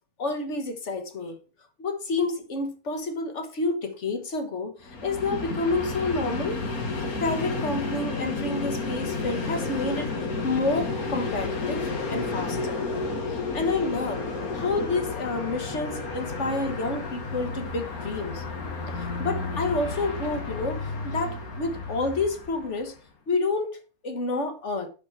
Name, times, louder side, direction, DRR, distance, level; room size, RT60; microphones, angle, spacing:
voice 1, 0.2-1.4 1.8-6.6 7.2-12.8 13.3-14.2 14.5-18.4 18.9-23.0 23.3-23.8 24.0-24.9, left 3 dB, 55° left, 1.7 m, -29 dB
Train, 4.8-22.9, left 3 dB, 90° left, 2.1 m, -32 dB
7.7 x 6.3 x 4.5 m
omnidirectional pair, 1.5 m